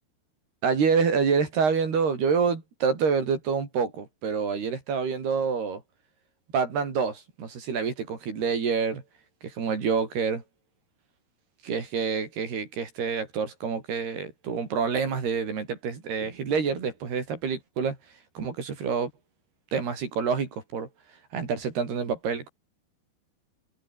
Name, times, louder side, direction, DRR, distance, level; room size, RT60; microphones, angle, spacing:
voice 1, 0.6-5.8 6.5-9.0 9.4-10.4 11.6-18.0 18.4-19.1 19.7-20.9 21.3-22.5, right 5 dB, 60° right, 6.5 m, -27 dB
omnidirectional pair, 5.3 m